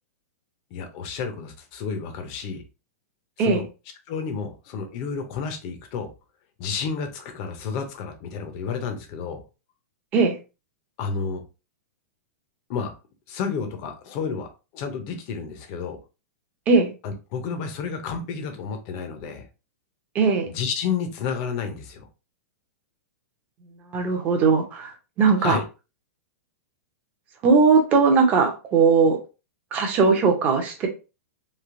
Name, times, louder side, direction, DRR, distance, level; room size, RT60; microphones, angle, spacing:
voice 1, 0.7-2.6 3.4-3.6 4.1-6.1 6.6-9.4 11.0-11.4 12.7-12.9 13.3-14.5 14.7-16.0 17.0-19.5 20.5-22.1 25.4-25.6, left 6 dB, 30° left, 6 dB, 0.5 m, -31 dB
voice 2, 20.1-20.5 23.9-25.6 27.4-29.2 29.7-30.9, right 4 dB, 20° right, 3 dB, 0.5 m, -19 dB
3.1 x 2.6 x 2.5 m, 0.30 s
supercardioid pair, 175°, 9 cm